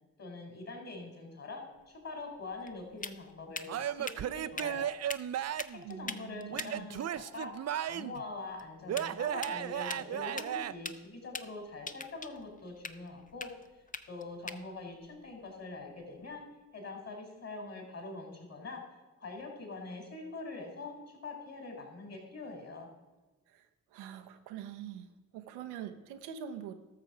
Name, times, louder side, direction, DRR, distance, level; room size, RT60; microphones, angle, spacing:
voice 1, 0.2-4.9 5.7-7.5 7.9-13.5 14.1-16.4 16.7-18.8 19.2-21.0 21.2-22.9, left 3 dB, 40° left, 2 dB, 4.0 m, -44 dB
sound 1, 1.7-16.5, left 4 dB, 20° left, 0.7 m, -46 dB
Male speech man speaking / Yell / Laughter, 3.7-5.8 6.5-8.2 8.9-10.7, right 10 dB, 40° right, 0.5 m, -35 dB
voice 2, 5.8-6.9 14.5-14.7 23.5-23.7 23.9-26.7, right 9 dB, 90° right, 7 dB, 0.8 m, -44 dB
13.0 x 6.7 x 4.9 m, 1.2 s
hypercardioid pair, 45°, 39 cm